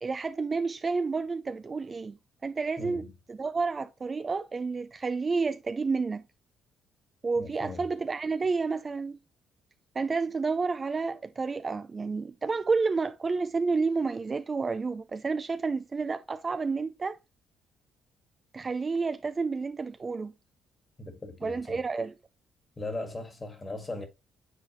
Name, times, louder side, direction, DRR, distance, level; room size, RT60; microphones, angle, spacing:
voice 1, 0.0-6.2 7.2-9.2 10.0-17.2 18.5-20.3 21.4-22.1, right 4 dB, 30° right, 0.4 m, -30 dB
voice 2, 2.8-3.1 7.4-7.9 21.0-21.8 22.8-24.1, left 2 dB, 25° left, 1.7 m, -38 dB
8.0 x 3.9 x 3.0 m
cardioid pair, 90°, 0 cm